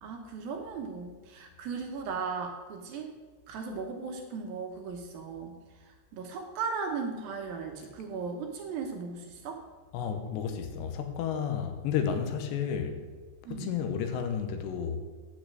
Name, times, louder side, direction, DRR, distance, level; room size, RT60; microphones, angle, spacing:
voice 1, 0.0-3.1 3.5-5.6 5.9-9.6 13.5-13.7, right 5 dB, 70° right, 3 dB, 2.4 m, -37 dB
voice 2, 9.9-13.0 13.5-15.0, left 7 dB, 90° left, 7 dB, 3.2 m, -32 dB
8.7 x 8.6 x 6.1 m, 1.4 s
omnidirectional pair, 4.9 m